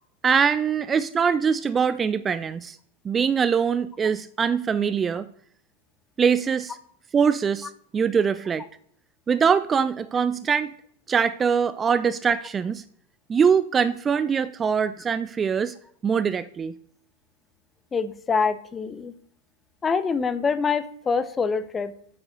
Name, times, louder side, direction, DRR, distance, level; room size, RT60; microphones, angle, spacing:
voice 1, 0.2-2.8 3.0-5.3 6.2-6.8 7.1-8.6 9.3-10.7 11.1-12.8 13.3-15.7 16.0-16.7, right 6 dB, 20° right, 0.4 m, -23 dB
voice 2, 17.9-19.1 19.8-21.9, left 5 dB, 20° left, 0.8 m, -25 dB
8.4 x 7.1 x 6.7 m
figure-of-eight pair, 90°, 0 cm